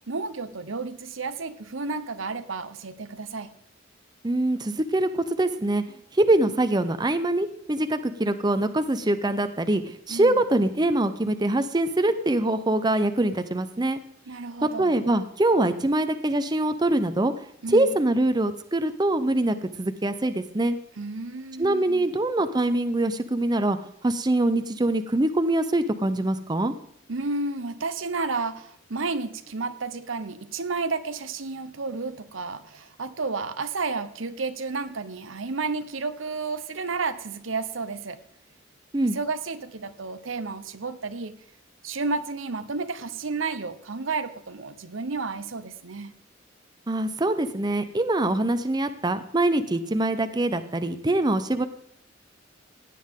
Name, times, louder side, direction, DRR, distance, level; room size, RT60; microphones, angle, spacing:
voice 1, 0.1-3.5 10.1-10.4 14.3-15.0 17.6-17.9 21.0-22.1 27.1-38.2 39.1-41.3 41.8-46.1, right 4 dB, 85° right, 10 dB, 1.0 m, -31 dB
voice 2, 4.2-5.8 6.1-14.0 14.8-17.3 17.7-20.8 21.6-23.8 24.0-26.7 38.9-39.2 46.9-51.7, right 1 dB, 20° right, 10 dB, 0.6 m, -24 dB
16.5 x 9.3 x 3.7 m, 0.71 s
head